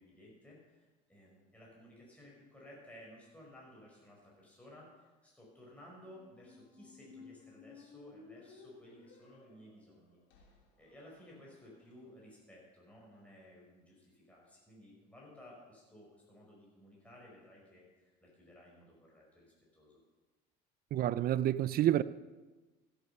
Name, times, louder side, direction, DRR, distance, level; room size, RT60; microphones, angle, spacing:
voice 1, 0.0-10.4 10.8-20.0, left 1 dB, 5° left, 5.2 m, -57 dB
Squeak, 6.0-12.0, left 5 dB, 80° left, 3.3 m, -58 dB
voice 2, 20.9-22.0, right 12 dB, 45° right, 0.5 m, -29 dB
16.0 x 8.9 x 5.6 m
supercardioid pair, 100°, 21 cm